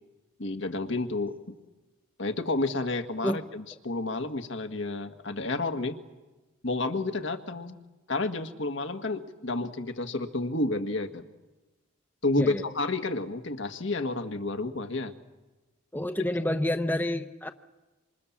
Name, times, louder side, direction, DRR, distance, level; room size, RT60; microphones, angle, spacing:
voice 1, 0.4-1.6 2.2-6.0 6.6-7.8 8.1-11.3 12.2-15.1, left 2 dB, 65° left, 7 dB, 1.6 m, -30 dB
voice 2, 15.9-17.5, left 1 dB, 10° left, 8 dB, 0.9 m, -28 dB
26.5 x 26.5 x 7.3 m, 1.1 s
head